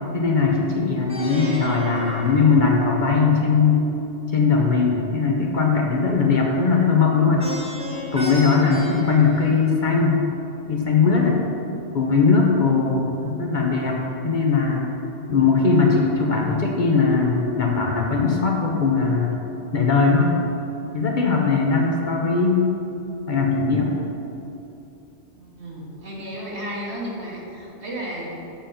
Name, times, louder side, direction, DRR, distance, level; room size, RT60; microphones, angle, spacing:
voice 1, 0.1-3.8 4.3-7.5 8.1-10.2 10.7-11.4 11.9-14.9 15.3-19.4 19.7-20.4 20.9-22.6 23.3-23.9, left 4 dB, 45° left, -1 dB, 1.0 m, -19 dB
Plucked string instrument, 1.1-3.2 7.4-10.0, left 1 dB, 5° right, 1.1 m, -34 dB
voice 2, 25.3-28.4, equal, 70° right, -3 dB, 1.7 m, -33 dB
7.2 x 5.2 x 5.7 m, 2.9 s
omnidirectional pair, 1.2 m